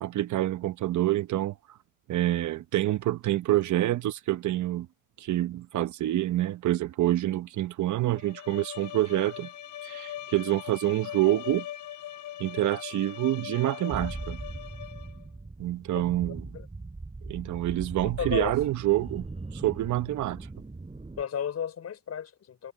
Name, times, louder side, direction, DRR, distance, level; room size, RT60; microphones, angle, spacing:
voice 1, 0.0-1.5 2.1-4.9 5.2-9.5 9.8-11.7 12.4-14.4 15.6-16.4 17.2-19.3 19.5-20.5, right 14 dB, 75° right, 1.1 m, -27 dB
Bowed string instrument, 8.1-15.2, left 12 dB, 80° left, 5.1 m, -40 dB
sound 1, 13.9-21.2, right 3 dB, 20° right, 4.8 m, -40 dB
voice 2, 18.2-18.5 21.2-22.7, left 8 dB, 55° left, 4.6 m, -33 dB
cardioid pair, 90°, 30 cm